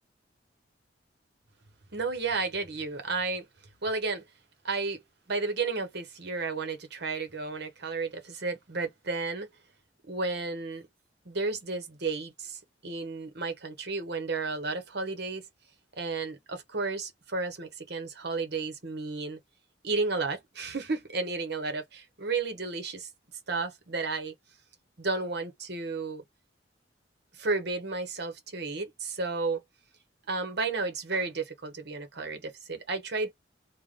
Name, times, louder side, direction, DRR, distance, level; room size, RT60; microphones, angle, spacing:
voice 1, 1.9-3.4 3.8-4.2 4.6-5.0 5.3-9.5 10.1-10.9 11.2-15.4 16.0-19.4 19.8-23.1 23.5-24.3 25.0-26.2 27.4-29.6 30.3-33.3, right 3 dB, 60° right, 1.1 m, -32 dB
3.3 x 2.2 x 3.6 m
head